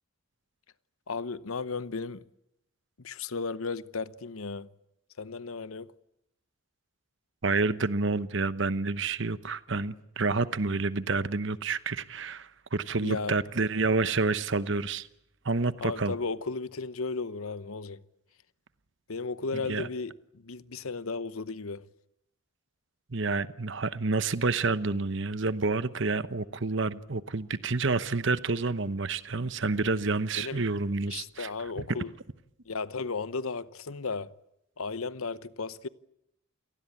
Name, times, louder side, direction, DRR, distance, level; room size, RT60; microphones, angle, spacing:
voice 1, 1.1-2.3 3.0-4.7 5.2-5.9 13.0-13.4 15.8-18.0 19.1-21.8 30.4-30.6 31.1-32.1 32.6-34.3 34.8-35.9, left 4 dB, 80° left, 0.9 m, -35 dB
voice 2, 7.4-15.1 15.4-16.1 19.5-19.9 23.1-31.5, right 3 dB, 55° right, 1.0 m, -29 dB
28.5 x 18.5 x 8.6 m
head